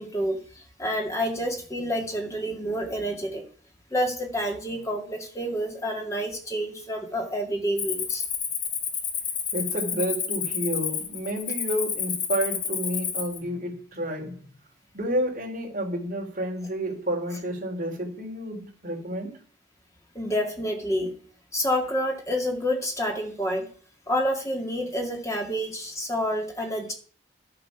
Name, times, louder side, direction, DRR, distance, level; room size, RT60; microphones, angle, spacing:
voice 1, 0.0-3.4 3.9-8.2 20.1-21.1 21.5-23.7 24.1-26.9, equal, 15° left, 2 dB, 2.2 m, -28 dB
Cricket, 7.8-13.4, left 7 dB, 75° left, 2.3 m, -30 dB
voice 2, 9.5-14.4 14.9-19.3, right 1 dB, 45° right, 0 dB, 3.0 m, -30 dB
11.0 x 7.6 x 5.8 m, 0.43 s
head